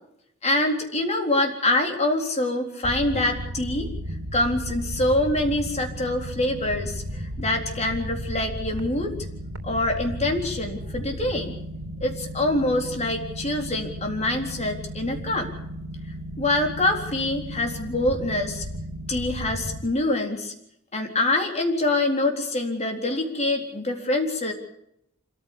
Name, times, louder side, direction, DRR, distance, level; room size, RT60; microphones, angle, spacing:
voice 1, 0.4-3.9 4.3-9.1 9.6-11.6 12.0-15.5 16.4-18.6 19.1-20.5 20.9-24.5, left 2 dB, 30° left, 3 dB, 3.9 m, -25 dB
sound 1, 2.8-19.8, equal, 70° right, 3.1 m, -35 dB
26.0 x 14.5 x 8.6 m, 0.76 s
head